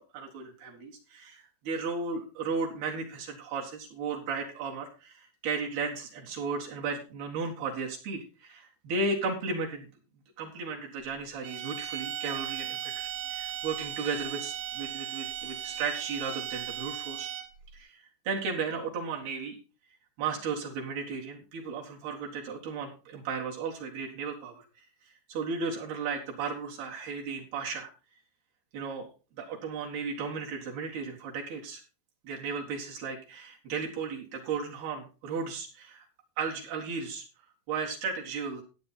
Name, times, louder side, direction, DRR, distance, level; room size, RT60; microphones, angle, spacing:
voice 1, 0.0-9.9 10.4-17.3 17.7-19.6 20.2-24.8 25.3-27.9 28.7-29.1 29.4-31.8 32.2-36.0 36.4-37.2 37.7-38.6, right 4 dB, 60° right, -2 dB, 3.5 m, -35 dB
sound 1, 11.4-17.7, right 11 dB, 85° right, 4.0 m, -37 dB
12.5 x 9.1 x 4.2 m, 0.32 s
omnidirectional pair, 5.8 m